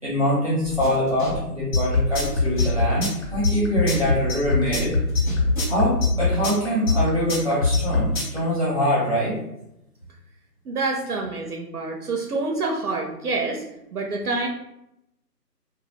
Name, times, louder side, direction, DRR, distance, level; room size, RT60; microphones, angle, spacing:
voice 1, 0.0-4.9 5.7-9.4, equal, 20° right, -10 dB, 0.7 m, -24 dB
sound 1, 0.6-3.6 3.9-5.8, equal, 30° left, 0.7 m, -34 dB
sound 2, 1.7-8.4, left 3 dB, 55° left, 1.0 m, -21 dB
voice 2, 10.7-13.6 13.9-14.5, right 3 dB, 65° right, 1 dB, 0.5 m, -27 dB
2.3 x 2.2 x 3.3 m, 0.86 s
figure-of-eight pair, 165°, 49 cm